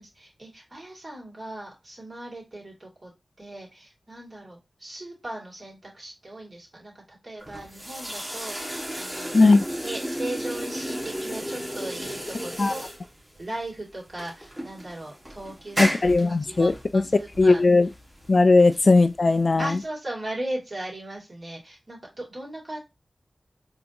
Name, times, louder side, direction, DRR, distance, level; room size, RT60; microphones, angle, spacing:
voice 1, 0.0-3.1 3.4-9.3 9.6-12.8 13.4-15.9 16.3-17.6 19.6-22.8, right 1 dB, 45° right, 2.3 m, -38 dB
sound 1, 7.4-19.8, equal, 15° right, 1.5 m, -34 dB
voice 2, 9.3-9.6 12.6-12.7 15.8-17.0 17.4-17.9 18.3-19.7, left 3 dB, 55° left, 0.3 m, -18 dB
4.3 x 2.7 x 2.8 m
cardioid pair, 55°, 0 cm